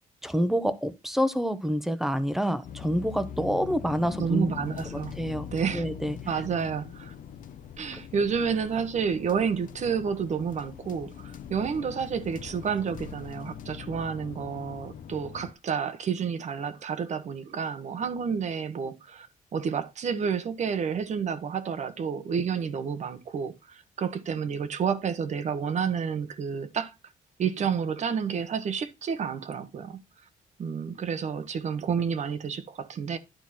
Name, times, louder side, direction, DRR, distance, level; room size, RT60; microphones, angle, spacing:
voice 1, 0.2-4.5 4.9-6.2, equal, ahead, 1.0 m, -27 dB
sound 1, 2.6-15.5, left 8 dB, 65° left, 0.8 m, -42 dB
voice 2, 4.2-5.1 5.5-5.8 6.3-7.1 7.8-26.9 27.4-30.0 30.6-33.2, right 6 dB, 55° right, 1.2 m, -30 dB
11.5 x 4.6 x 4.4 m
cardioid pair, 120°, 15 cm